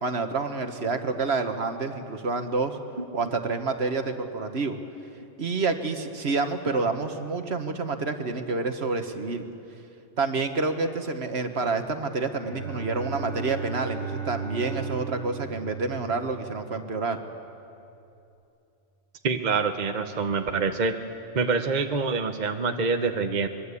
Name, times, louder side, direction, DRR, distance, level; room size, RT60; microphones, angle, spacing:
voice 1, 0.0-2.8 3.1-4.8 5.4-9.5 10.2-17.2, right 4 dB, 60° right, 7 dB, 1.6 m, -28 dB
Bowed string instrument, 12.3-16.8, right 5 dB, 65° left, 4.2 m, -36 dB
voice 2, 19.2-21.0 21.3-23.5, right 4 dB, 40° right, 6 dB, 1.0 m, -26 dB
23.0 x 23.0 x 8.4 m, 2.7 s
omnidirectional pair, 1.3 m